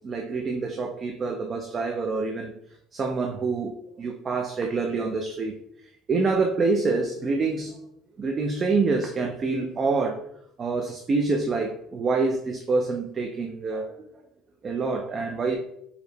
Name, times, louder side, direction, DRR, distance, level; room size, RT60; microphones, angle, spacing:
voice 1, 0.0-2.6 2.9-5.6 6.1-7.8 8.2-10.2 10.6-14.1 14.6-15.6, right 3 dB, 30° right, 3 dB, 0.4 m, -26 dB
4.7 x 2.1 x 3.3 m, 0.74 s
cardioid pair, 135°, 0 cm